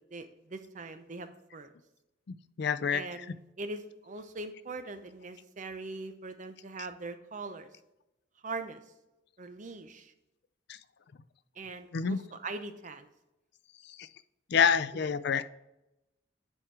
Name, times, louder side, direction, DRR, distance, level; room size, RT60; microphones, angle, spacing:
voice 1, 0.1-1.7 2.9-3.3 3.6-7.7 8.4-8.8 9.4-10.1 11.6-13.1, right 3 dB, 40° right, 9 dB, 0.6 m, -41 dB
voice 2, 2.6-3.4 10.7-10.8 11.9-12.2 13.9-14.1 14.5-15.4, left 6 dB, 60° left, 13 dB, 0.4 m, -27 dB
10.0 x 4.5 x 3.2 m, 0.93 s
head